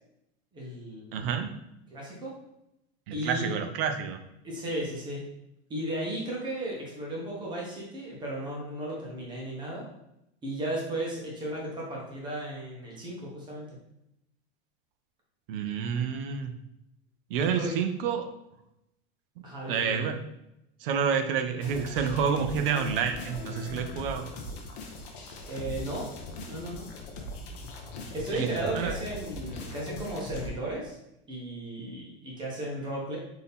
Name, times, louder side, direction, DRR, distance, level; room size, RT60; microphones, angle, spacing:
voice 1, 0.5-1.2 1.9-2.3 3.1-3.6 4.4-5.2 5.7-9.8 10.4-13.7 17.4-17.7 19.4-20.0 25.4-26.0 26.5-26.9 28.1-31.0 31.3-33.2, right 1 dB, 15° right, -3 dB, 0.8 m, -35 dB
voice 2, 1.1-1.5 3.1-4.2 15.5-16.5 17.3-18.3 19.4-20.2 20.8-24.3 28.3-28.9, right 7 dB, 55° right, 7 dB, 0.5 m, -29 dB
sound 1, 21.6-30.5, left 2 dB, 50° left, 0.8 m, -40 dB
4.1 x 2.8 x 3.5 m, 0.84 s
supercardioid pair, 170°, 33 cm